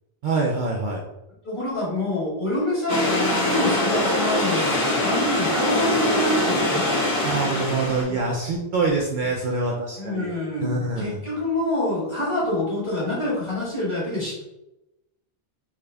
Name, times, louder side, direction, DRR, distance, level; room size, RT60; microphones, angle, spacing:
voice 1, 0.2-1.0 7.2-10.3 10.6-11.2, right 3 dB, 60° right, -1 dB, 0.6 m, -25 dB
voice 2, 1.4-6.8 8.1-8.2 10.0-14.4, left 1 dB, 30° left, -8 dB, 1.7 m, -26 dB
sound 1, 2.9-8.0, left 1 dB, 45° left, 1.6 m, -23 dB
3.6 x 2.3 x 3.3 m, 0.91 s
omnidirectional pair, 1.0 m